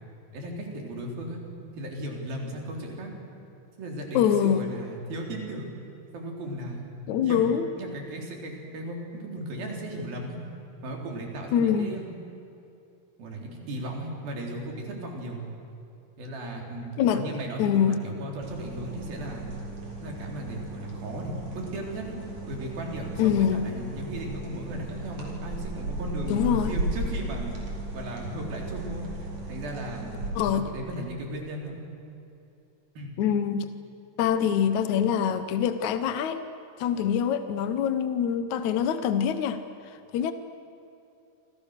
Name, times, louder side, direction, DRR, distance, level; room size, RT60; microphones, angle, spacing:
voice 1, 0.3-1.4 1.8-3.1 3.8-5.7 6.1-6.8 7.2-10.4 10.8-12.1 13.2-15.5 16.2-19.5 20.0-22.2 22.5-27.6 27.9-30.2 30.5-31.7 33.0-33.1, right 1 dB, 85° right, 0 dB, 5.7 m, -36 dB
voice 2, 4.1-4.7 7.1-7.7 11.5-11.9 17.0-18.0 23.2-23.7 26.3-26.8 30.4-30.7 33.2-33.7 34.2-36.4 36.8-39.6 39.9-40.3, left 8 dB, 65° left, 10 dB, 2.1 m, -24 dB
sound 1, 18.4-30.3, right 2 dB, 50° right, 5.5 m, -36 dB
29.0 x 26.5 x 6.7 m, 2.7 s
omnidirectional pair, 4.1 m